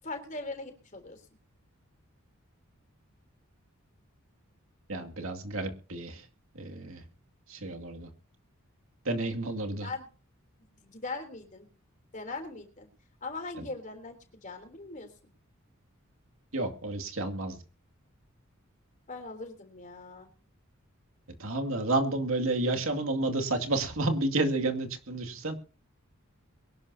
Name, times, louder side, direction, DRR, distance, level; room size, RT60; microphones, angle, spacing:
voice 1, 0.0-1.2 9.8-10.1 10.8-11.7 12.1-12.9 13.2-14.2 14.4-15.1 19.1-20.3, left 3 dB, 35° left, 6 dB, 3.3 m, -40 dB
voice 2, 4.9-6.3 6.5-7.0 7.5-8.1 9.0-9.9 13.6-13.7 16.5-17.6 21.4-25.5, right 2 dB, 70° right, 3 dB, 2.3 m, -30 dB
22.5 x 12.0 x 2.8 m, 0.37 s
head